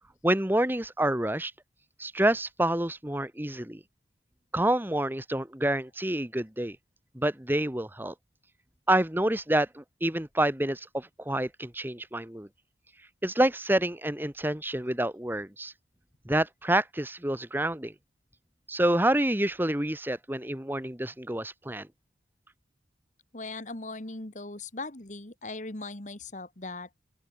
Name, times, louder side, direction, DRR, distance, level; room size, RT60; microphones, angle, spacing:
voice 1, 0.2-1.5 2.0-3.8 4.5-6.8 7.1-8.1 8.9-12.5 13.2-15.7 16.2-17.9 18.7-21.9, right 1 dB, 10° right, 1.4 m, -28 dB
voice 2, 23.3-26.9, left 2 dB, 40° left, 2.0 m, -39 dB
open air
head